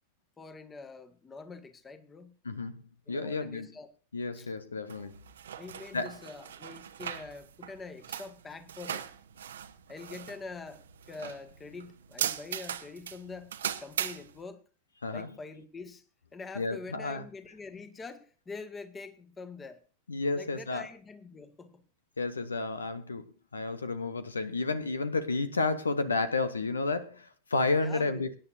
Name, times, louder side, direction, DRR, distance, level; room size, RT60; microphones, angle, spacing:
voice 1, 0.4-2.3 3.1-3.9 4.3-4.5 5.0-5.1 5.5-9.1 9.9-14.6 15.1-16.0 16.3-19.8 20.4-21.8 27.8-28.3, left 4 dB, 15° left, 1.6 m, -45 dB
voice 2, 2.4-2.8 3.1-3.7 4.1-5.2 5.9-6.2 15.0-15.3 16.6-17.2 20.1-20.9 22.2-23.3 23.5-28.4, left 3 dB, 75° left, 0.9 m, -31 dB
sound 1, 4.9-14.4, right 9 dB, 65° right, 0.9 m, -39 dB
24.0 x 10.0 x 2.6 m
figure-of-eight pair, 90°, 0 cm